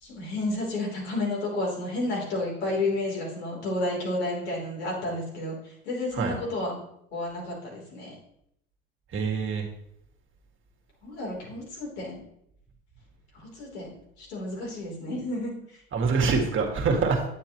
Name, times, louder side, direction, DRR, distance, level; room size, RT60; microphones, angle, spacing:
voice 1, 0.0-6.8 7.1-8.1 11.0-12.2 13.3-13.9 14.2-15.8, left 2 dB, 85° left, -4 dB, 3.4 m, -31 dB
voice 2, 9.1-9.7 15.9-17.2, right 4 dB, 40° right, 2 dB, 1.8 m, -25 dB
9.1 x 7.9 x 3.0 m, 0.73 s
hypercardioid pair, 85°, 32 cm